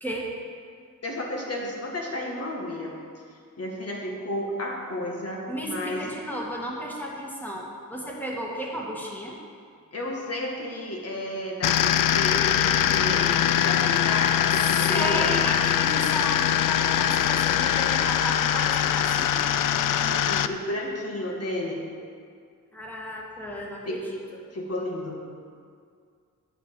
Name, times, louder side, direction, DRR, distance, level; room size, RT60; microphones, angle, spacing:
voice 1, 0.0-0.3 5.5-9.4 14.9-19.5 22.7-24.2, equal, 5° left, -2 dB, 1.9 m, -33 dB
voice 2, 1.0-2.9 3.6-6.0 9.9-15.3 19.5-21.9 23.9-24.0 24.5-25.2, left 1 dB, 45° left, -1 dB, 1.9 m, -32 dB
sound 1, 11.6-20.5, left 10 dB, 75° left, 0.5 m, -22 dB
9.0 x 7.1 x 6.3 m, 2.2 s
wide cardioid pair, 110°, 33 cm